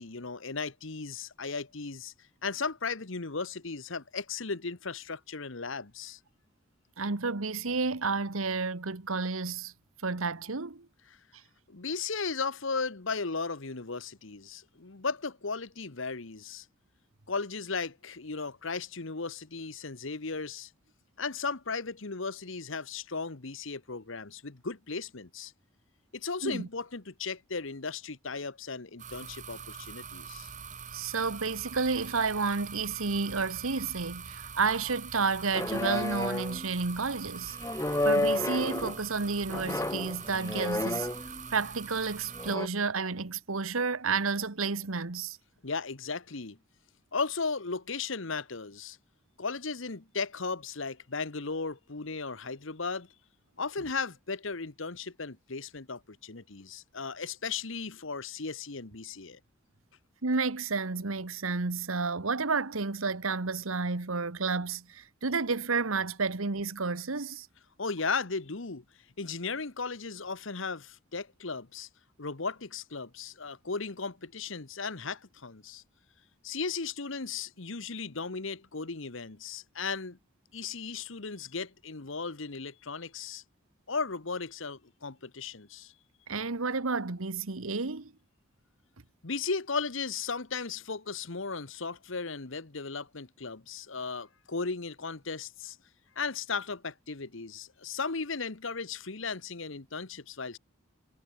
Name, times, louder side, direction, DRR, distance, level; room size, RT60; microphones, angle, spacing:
voice 1, 0.0-2.1 2.4-6.2 11.1-11.2 11.7-16.7 17.3-20.7 21.2-25.5 26.1-30.5 45.6-46.6 47.1-49.0 49.4-53.1 53.6-59.4 67.8-68.8 69.2-71.9 72.2-75.8 76.4-80.2 80.5-83.4 83.9-85.9 89.2-95.8 96.1-100.6, left 4 dB, 65° left, 1.3 m, -36 dB
voice 2, 7.0-9.7 10.0-10.9 26.4-26.7 30.9-37.6 38.0-41.1 41.5-45.4 60.2-67.5 86.3-88.1, right 4 dB, 85° right, 1.4 m, -31 dB
sound 1, 29.0-42.6, right 6 dB, 35° right, 3.7 m, -44 dB
sound 2, 35.5-36.7 37.6-39.0 39.5-41.5 42.4-42.7, left 1 dB, 15° left, 0.9 m, -31 dB
head